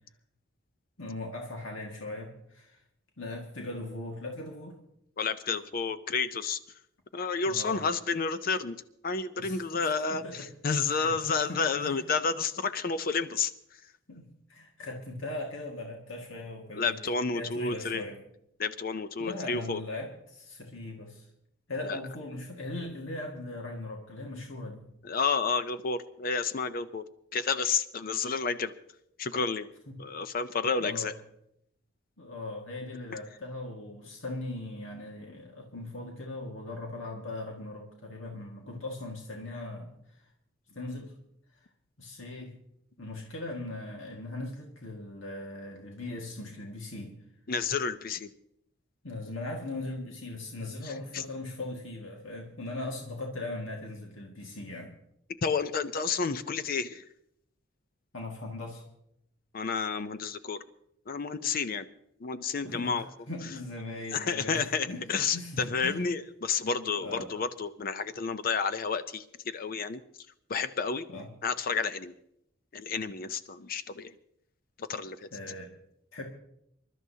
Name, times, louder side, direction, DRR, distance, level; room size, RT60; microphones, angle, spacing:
voice 1, 1.0-2.8 3.2-4.8 7.5-7.8 9.4-10.5 10.9-11.2 11.5-11.9 14.1-17.0 17.3-18.2 19.2-21.3 21.7-24.8 29.9-30.0 30.8-31.1 32.2-39.9 40.7-41.1 42.0-42.5 43.0-47.2 49.0-55.0 58.1-58.8 62.6-66.1 67.0-67.3 71.1-71.3 75.3-75.7 76.1-76.2, left 2 dB, 70° left, 0 dB, 1.8 m, -39 dB
voice 2, 5.2-6.6 7.1-8.8 9.0-13.5 16.7-18.0 18.6-19.8 21.9-22.0 25.0-27.0 27.3-28.7 29.2-29.7 30.0-31.1 33.1-33.2 47.5-48.3 50.8-51.2 55.4-57.0 59.5-60.6 61.1-61.8 62.2-63.1 64.1-70.0 70.5-71.1 71.4-72.1 72.7-74.1 74.8-75.2, left 5 dB, 45° left, 12 dB, 0.5 m, -30 dB
27.0 x 12.5 x 2.8 m, 0.76 s
head